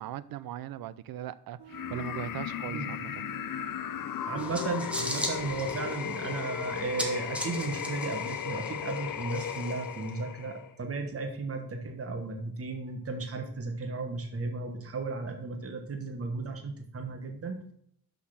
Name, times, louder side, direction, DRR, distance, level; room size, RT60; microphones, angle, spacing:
voice 1, 0.0-3.2, right 12 dB, 55° right, 0.5 m, -39 dB
sound 1, 1.6-8.1, right 14 dB, 75° right, 1.3 m, -52 dB
sound 2, 1.7-10.7, left 9 dB, 50° left, 0.6 m, -36 dB
voice 2, 4.3-17.6, right 3 dB, 35° right, 1.2 m, -35 dB
sound 3, 4.4-10.1, equal, 5° right, 1.1 m, -39 dB
6.5 x 5.7 x 5.7 m
cardioid pair, 125°, 42 cm